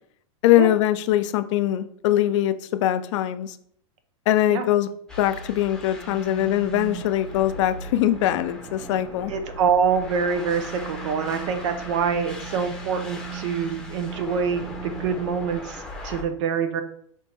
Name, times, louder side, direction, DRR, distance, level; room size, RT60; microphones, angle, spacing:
voice 1, 0.4-3.6 4.3-4.9 5.2-9.3, left 13 dB, 65° left, 11 dB, 0.4 m, -22 dB
sound 1, 5.1-16.2, left 1 dB, 5° left, 0.8 m, -39 dB
sound 2, 5.9-15.6, right 14 dB, 20° right, 0.5 m, -40 dB
voice 2, 9.3-16.8, right 6 dB, 60° right, 8 dB, 0.6 m, -25 dB
3.5 x 3.0 x 4.3 m, 0.64 s
hypercardioid pair, 120°, 17 cm